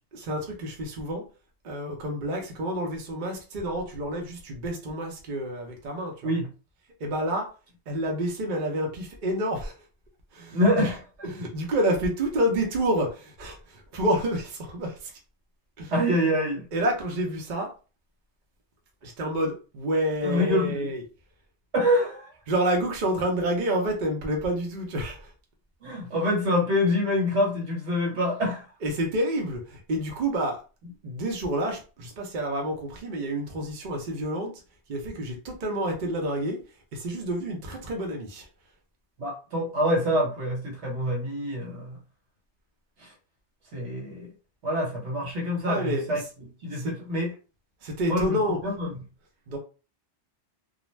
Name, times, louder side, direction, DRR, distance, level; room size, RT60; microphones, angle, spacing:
voice 1, 0.1-1.2 1.6-6.3 7.0-7.5 7.9-9.7 10.3-10.9 11.2-15.1 15.8-15.9 16.7-17.7 19.0-21.0 22.5-25.3 28.8-30.6 31.0-34.5 34.9-36.6 36.9-38.5 45.6-46.2 46.7-46.9 47.8-48.6 49.5-49.6, right 1 dB, 50° right, 0.7 m, -29 dB
voice 2, 10.5-11.0 15.9-16.6 20.2-20.9 21.7-22.3 25.8-28.6 39.2-42.0 43.7-44.3 44.6-46.2 46.6-47.3 48.0-48.4 48.6-48.9, left 1 dB, 75° right, 1.3 m, -25 dB
2.4 x 2.1 x 3.1 m
omnidirectional pair, 1.2 m